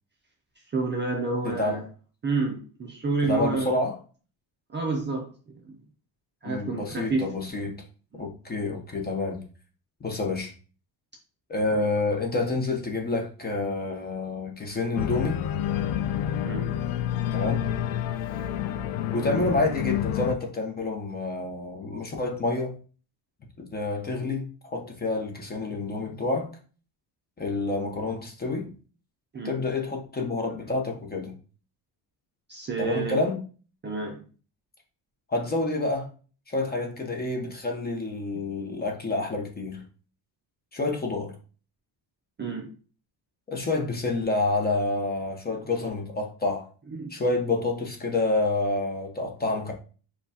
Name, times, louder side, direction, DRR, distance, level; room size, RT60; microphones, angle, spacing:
voice 1, 0.7-1.8 2.2-3.8 4.7-5.3 5.6-5.8 6.4-7.3 8.1-8.3 16.4-16.8 29.3-29.6 32.5-33.3 33.8-34.2 38.3-38.4 42.4-42.7 46.9-47.1, right 3 dB, 25° right, 0.4 m, -29 dB
voice 2, 1.4-1.8 3.2-4.0 6.4-7.8 8.2-9.4 10.0-10.5 11.5-15.4 17.3-17.7 19.1-22.7 23.6-26.5 27.4-28.7 29.4-31.3 32.8-33.4 35.3-36.1 36.5-39.8 40.7-41.3 43.5-46.7 47.1-49.7, left 2 dB, 20° left, 0.7 m, -28 dB
Organ, 14.9-20.4, left 10 dB, 90° left, 0.5 m, -28 dB
6.9 x 2.3 x 2.7 m
cardioid pair, 155°, 47 cm